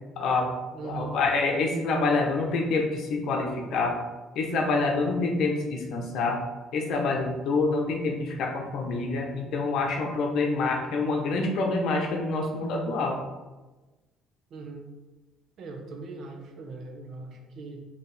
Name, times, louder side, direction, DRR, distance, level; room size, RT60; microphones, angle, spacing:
voice 1, 0.2-0.5 0.8-4.0 4.3-6.4 6.7-13.2, left 3 dB, 65° left, 1 dB, 0.7 m, -26 dB
voice 2, 0.7-1.2 14.5-14.9 15.6-17.8, right 3 dB, 55° right, 2 dB, 0.7 m, -40 dB
4.4 x 2.9 x 3.3 m, 1.2 s
cardioid pair, 110°, 0 cm